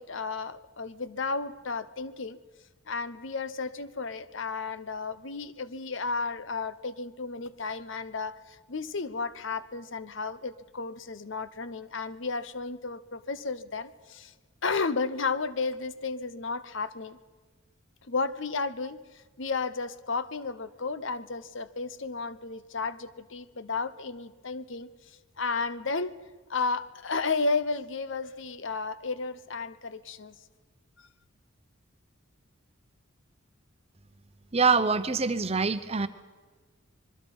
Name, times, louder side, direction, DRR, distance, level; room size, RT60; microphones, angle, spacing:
voice 1, 0.0-2.4 2.9-14.3 14.6-17.2 18.1-19.0 19.4-24.9 25.4-26.1 26.5-30.3, left 4 dB, 65° left, 14 dB, 0.9 m, -33 dB
voice 2, 34.5-36.1, right 4 dB, 30° right, 12 dB, 0.8 m, -24 dB
26.0 x 22.0 x 5.5 m, 1.4 s
head